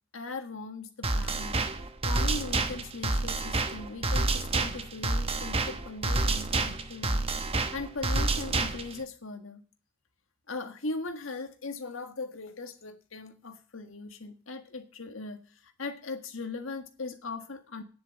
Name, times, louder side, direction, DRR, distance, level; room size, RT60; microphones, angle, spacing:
voice 1, 0.1-1.6 2.0-7.2 7.7-9.6 10.5-15.4 15.8-17.8, left 3 dB, 75° left, 7 dB, 1.6 m, -39 dB
sound 1, 1.0-9.0, right 2 dB, 30° right, 1.0 m, -29 dB
9.7 x 7.6 x 7.9 m, 0.38 s
head